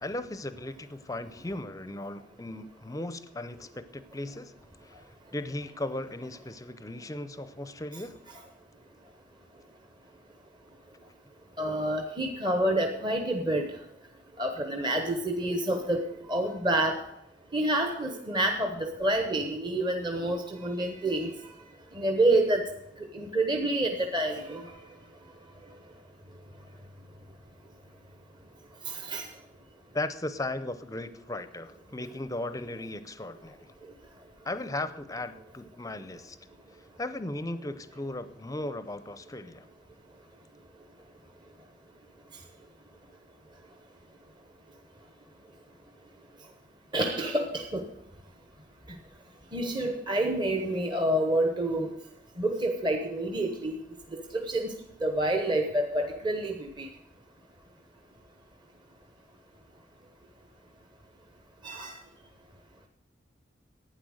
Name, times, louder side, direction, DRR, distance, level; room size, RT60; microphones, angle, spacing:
voice 1, 0.0-4.5 4.8-5.0 5.3-8.2 29.9-33.6 34.4-36.4 37.0-39.6, left 2 dB, 20° left, 13 dB, 0.6 m, -36 dB
voice 2, 11.6-13.7 14.4-16.0 16.3-17.0 17.5-21.3 21.9-22.6 23.1-24.6 28.8-29.3 46.9-47.9 49.5-51.9 52.4-53.8 54.1-54.7 55.0-56.9 61.6-61.9, right 1 dB, 25° right, 4 dB, 1.0 m, -28 dB
12.0 x 9.3 x 6.4 m, 0.82 s
head